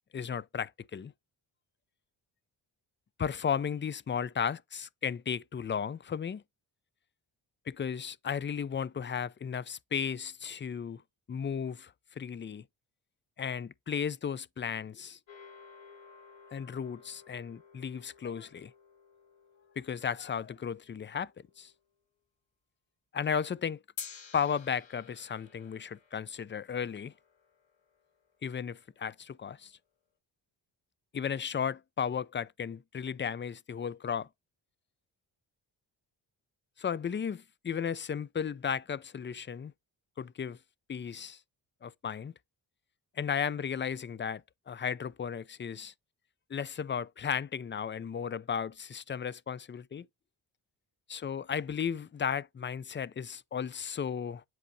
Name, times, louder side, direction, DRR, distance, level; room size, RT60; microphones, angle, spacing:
voice 1, 0.1-1.1 3.2-6.4 7.7-11.0 11.3-12.6 13.4-15.2 16.5-18.7 19.8-21.3 21.6-21.7 23.1-23.8 24.3-27.1 28.4-29.7 31.1-34.3 36.8-39.7 40.2-40.6 40.9-41.4 41.8-42.3 43.2-44.4 44.7-45.9 46.5-50.1 51.1-54.4, left 7 dB, 25° left, 0.4 m, -34 dB
sound 1, 15.3-21.7 24.0-28.4, left 6 dB, 75° left, 2.1 m, -52 dB
7.8 x 4.8 x 2.7 m
cardioid pair, 60°, 46 cm